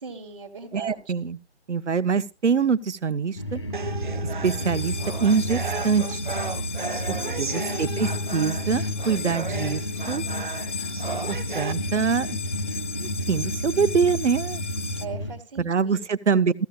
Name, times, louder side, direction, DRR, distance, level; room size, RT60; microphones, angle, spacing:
voice 1, 0.0-1.1 7.1-7.8 15.0-16.0, right 5 dB, 25° right, 1.5 m, -40 dB
voice 2, 0.7-1.4 1.7-3.6 4.4-6.3 7.1-10.2 11.3-12.4 13.0-14.6 15.6-16.5, right 6 dB, 90° right, 0.9 m, -24 dB
sound 1, 3.4-15.3, equal, 25° left, 0.7 m, -31 dB
sound 2, 3.7-11.7, right 5 dB, 45° right, 0.5 m, -35 dB
sound 3, 4.4-15.1, left 6 dB, 90° left, 1.1 m, -37 dB
15.0 x 13.5 x 2.3 m
figure-of-eight pair, 165°, 34 cm